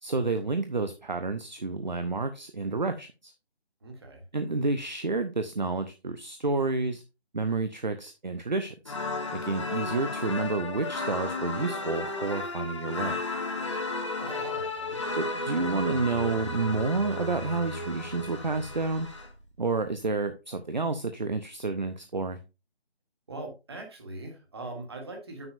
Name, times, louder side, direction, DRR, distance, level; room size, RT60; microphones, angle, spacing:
voice 1, 0.0-3.3 4.3-7.0 7.3-8.9 9.3-13.2 15.1-19.1 19.6-22.4, right 3 dB, 45° right, 9 dB, 0.7 m, -30 dB
voice 2, 3.8-4.2 14.2-15.0 23.3-25.5, right 2 dB, 25° right, 2 dB, 1.6 m, -41 dB
sound 1, 8.8-19.3, left 3 dB, 30° left, 1.1 m, -34 dB
sound 2, 15.5-19.8, right 2 dB, 85° right, 1.0 m, -42 dB
9.6 x 7.1 x 2.6 m, 0.29 s
figure-of-eight pair, 160°, 32 cm